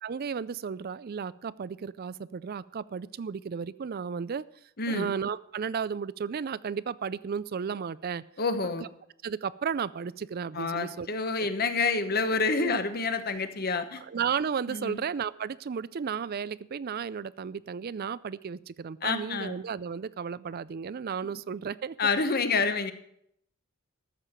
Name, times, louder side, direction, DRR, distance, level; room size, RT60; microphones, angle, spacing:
voice 1, 0.0-4.4 4.9-8.2 9.2-11.1 11.4-11.5 12.6-12.8 14.0-22.0, right 6 dB, 45° right, 19 dB, 0.4 m, -34 dB
voice 2, 4.8-5.1 8.4-8.9 10.5-14.0 14.7-15.0 19.0-19.5 21.2-21.3 22.0-22.9, left 4 dB, 45° left, 9 dB, 1.0 m, -28 dB
13.0 x 7.5 x 6.6 m, 0.72 s
head